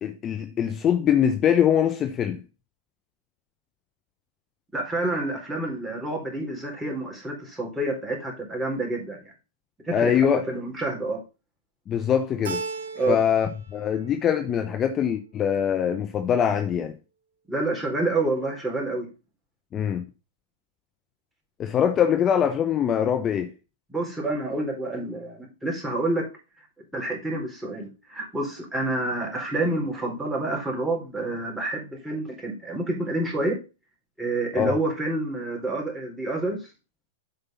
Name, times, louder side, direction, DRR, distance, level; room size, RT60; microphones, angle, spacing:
voice 1, 0.0-2.4 9.9-10.4 11.9-12.6 13.1-16.9 19.7-20.0 21.6-23.5 34.5-34.7, left 8 dB, 30° left, 0.9 m, -23 dB
voice 2, 4.7-9.3 9.8-10.2 10.5-11.2 12.9-13.2 17.5-19.1 23.9-26.3 26.9-33.6 34.2-36.7, right 2 dB, 10° right, 4.3 m, -28 dB
Keyboard (musical), 12.4-13.6 13.9-14.6, right 4 dB, 65° right, 2.2 m, -35 dB
8.2 x 5.3 x 5.8 m
hypercardioid pair, 105°, 0 cm